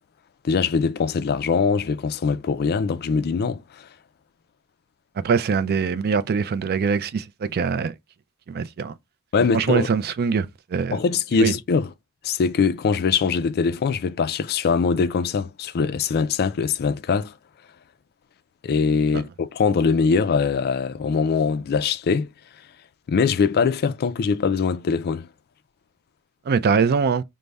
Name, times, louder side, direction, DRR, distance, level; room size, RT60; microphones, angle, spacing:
voice 1, 0.4-3.9 9.3-9.9 10.9-11.9 12.2-17.3 18.6-22.3 23.1-25.3, left 5 dB, 45° left, 0.3 m, -22 dB
voice 2, 5.2-7.9 8.5-8.9 9.5-11.0 11.4-11.5 26.5-27.2, right 5 dB, 45° right, 0.3 m, -23 dB
5.2 x 2.1 x 3.4 m
head